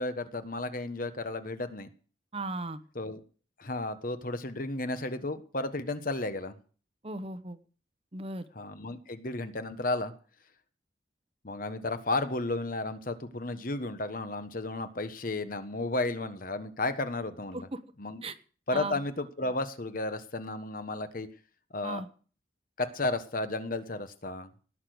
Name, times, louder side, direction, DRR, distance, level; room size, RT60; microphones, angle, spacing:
voice 1, 0.0-1.9 2.9-3.2 3.6-6.5 8.5-10.1 11.4-17.7 18.0-18.2 18.7-21.3 21.7-22.0 22.8-24.5, left 2 dB, 50° left, 10 dB, 1.2 m, -33 dB
voice 2, 2.3-2.8 7.0-7.6 8.1-8.4 17.5-17.8 18.2-18.4 18.7-19.0 21.8-22.1, right 2 dB, 30° right, 12 dB, 1.0 m, -36 dB
18.5 x 6.7 x 7.8 m, 0.41 s
head